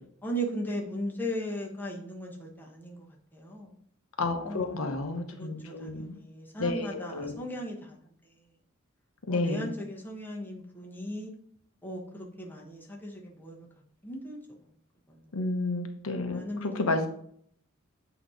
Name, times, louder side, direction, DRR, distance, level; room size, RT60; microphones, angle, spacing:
voice 1, 0.2-3.1 3.3-3.8 4.4-4.9 5.4-7.9 9.3-11.3 11.8-13.7 14.0-14.4 15.1-15.2 16.3-17.1, equal, 10° left, 1.2 m, -37 dB
voice 2, 4.2-6.2 6.6-7.4 9.3-9.7 15.3-17.1, left 2 dB, 80° left, 0.8 m, -31 dB
8.0 x 3.0 x 5.0 m
head